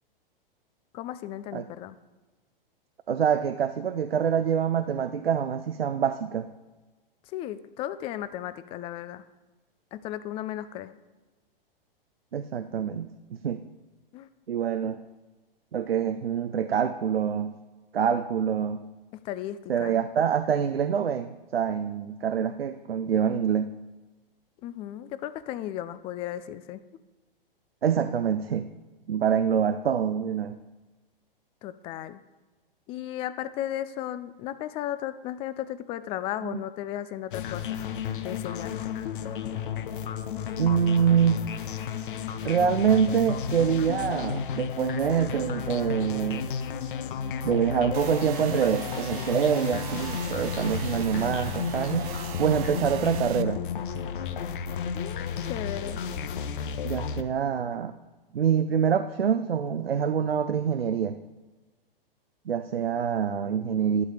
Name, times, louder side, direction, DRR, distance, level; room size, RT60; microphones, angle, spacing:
voice 1, 0.9-2.0 7.3-9.2 9.9-10.9 14.1-14.3 19.1-19.9 24.6-26.8 31.6-32.2 32.9-37.8 38.2-38.8 54.9-56.0, left 12 dB, 20° left, 14 dB, 0.4 m, -35 dB
voice 2, 3.1-6.5 12.3-13.1 13.4-13.6 14.5-15.0 15.7-17.5 17.9-18.8 19.7-23.7 27.8-28.7 29.1-30.6 36.4-36.6 40.6-41.5 42.4-46.5 47.4-52.1 52.4-53.6 56.8-57.9 58.3-61.2 62.5-64.0, right 8 dB, 85° right, 10 dB, 0.6 m, -25 dB
sound 1, 37.3-57.2, left 7 dB, 60° left, 0.8 m, -33 dB
sound 2, 47.9-53.4, right 11 dB, 40° right, 0.8 m, -39 dB
12.0 x 4.9 x 7.1 m, 1.2 s
hypercardioid pair, 115°, 29 cm